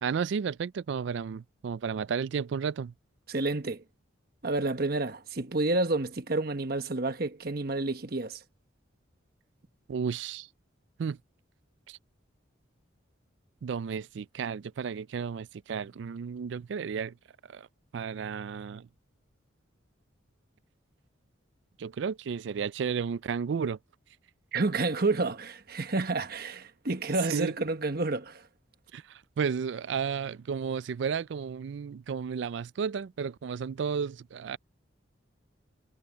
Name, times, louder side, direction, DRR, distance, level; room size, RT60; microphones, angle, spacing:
voice 1, 0.0-2.9 9.9-10.5 11.0-11.2 11.9-12.0 13.6-17.1 17.5-17.7 17.9-18.9 21.8-23.8 27.3-27.5 28.9-34.6, right 6 dB, 65° right, 0.3 m, -33 dB
voice 2, 3.3-3.8 4.4-8.4 24.5-28.4, right 2 dB, 50° right, 1.2 m, -29 dB
head